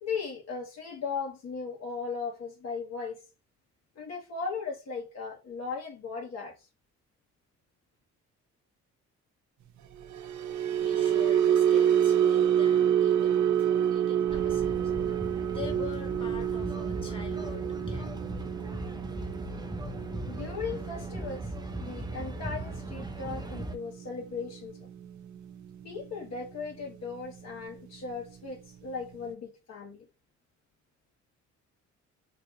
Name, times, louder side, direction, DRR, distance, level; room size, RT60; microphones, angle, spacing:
voice 1, 0.0-3.2 3.9-6.6 20.3-21.5 21.8-24.9 25.8-30.1, left 5 dB, 60° left, 1.4 m, -37 dB
sound 1, 10.0-26.4 26.7-27.0 27.4-27.6, right 9 dB, 70° right, 0.6 m, -28 dB
voice 2, 10.3-14.9 15.5-18.1, left 5 dB, 15° left, 1.6 m, -44 dB
sound 2, 14.3-23.7, right 1 dB, 15° right, 0.7 m, -38 dB
4.0 x 2.7 x 2.9 m
cardioid pair, 90°, 30 cm